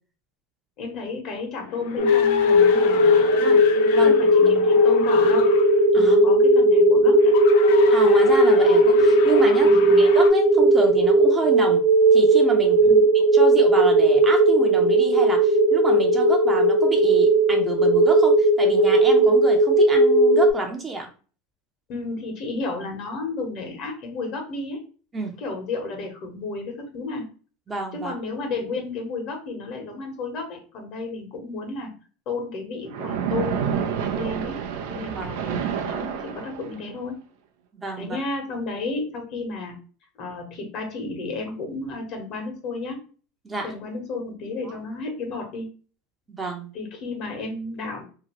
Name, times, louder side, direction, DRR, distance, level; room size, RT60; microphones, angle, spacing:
voice 1, 0.8-3.6 3.9-5.5 5.9-7.3 9.6-10.0 12.8-13.0 21.9-24.8 25.4-27.3 27.9-31.9 32.3-34.6 34.9-37.2 38.0-39.7 40.2-43.0 43.6-45.7 46.7-48.0, left 3 dB, 55° left, 2 dB, 1.2 m, -32 dB
sound 1, 1.6-5.8 7.2-10.3, left 7 dB, 80° left, 0.5 m, -34 dB
random binauralizer, 2.0-20.5, right 1 dB, 60° right, 1.1 m, -17 dB
voice 2, 4.5-4.8 5.9-6.2 7.9-9.7 10.0-11.8 12.1-12.8 13.1-21.1 25.1-25.4 27.7-28.1 35.2-35.3 37.7-38.2 43.4-43.7 44.6-44.7 46.3-46.7, right 3 dB, 20° right, 2 dB, 0.7 m, -29 dB
Splash splatter, 32.9-36.9, right 8 dB, 80° right, 0.5 m, -29 dB
2.8 x 2.4 x 3.0 m, 0.37 s
supercardioid pair, 115°, 0 cm